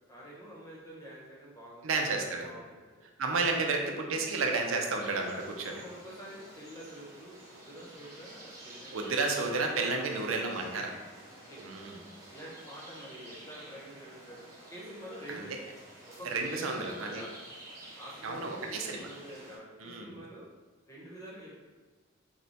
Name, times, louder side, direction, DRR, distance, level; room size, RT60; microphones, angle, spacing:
voice 1, 0.1-3.0 3.6-4.0 5.6-10.0 10.6-10.8 11.5-11.7 12.3-15.5 16.1-17.4 18.0-20.4 20.9-21.7, equal, 15° left, -5 dB, 0.9 m, -47 dB
voice 2, 1.8-2.5 3.2-5.8 8.9-10.9 11.6-12.0 15.3-15.6 16.2-17.2 18.2-19.1 19.8-20.2, right 3 dB, 80° right, 2 dB, 0.6 m, -32 dB
sound 1, 5.0-19.6, right 1 dB, 15° right, 0.9 m, -51 dB
4.7 x 2.2 x 4.0 m, 1.3 s
head